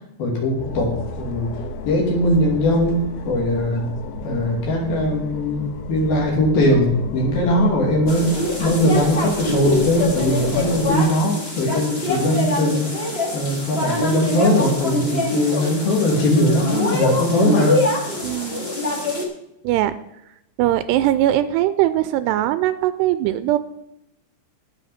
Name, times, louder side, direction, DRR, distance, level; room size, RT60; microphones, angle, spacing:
voice 1, 0.2-1.5 1.9-3.9 4.2-5.6 5.9-17.8, left 1 dB, 60° left, -1 dB, 4.4 m, -20 dB
sound 1, 0.6-11.0, left 3 dB, 85° left, 3.4 m, -32 dB
sound 2, 8.1-19.2, left 2 dB, 35° left, 0.9 m, -24 dB
voice 2, 18.2-18.7 19.6-20.0 20.6-23.6, right 13 dB, 85° right, 13 dB, 2.6 m, -20 dB
18.5 x 6.7 x 4.3 m, 0.83 s
omnidirectional pair, 5.0 m